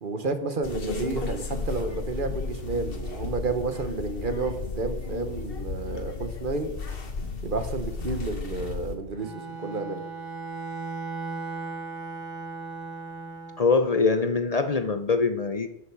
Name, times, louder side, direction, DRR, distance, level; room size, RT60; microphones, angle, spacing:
voice 1, 0.0-6.7 7.4-10.0, right 3 dB, 55° right, 8 dB, 1.3 m, -31 dB
sound 1, 0.6-9.0, left 3 dB, 65° left, 1.5 m, -34 dB
Bowed string instrument, 9.1-13.6, right 4 dB, 20° right, 2.6 m, -36 dB
voice 2, 13.6-15.7, left 4 dB, 45° left, 8 dB, 0.7 m, -23 dB
12.5 x 6.5 x 4.7 m, 0.78 s
omnidirectional pair, 1.0 m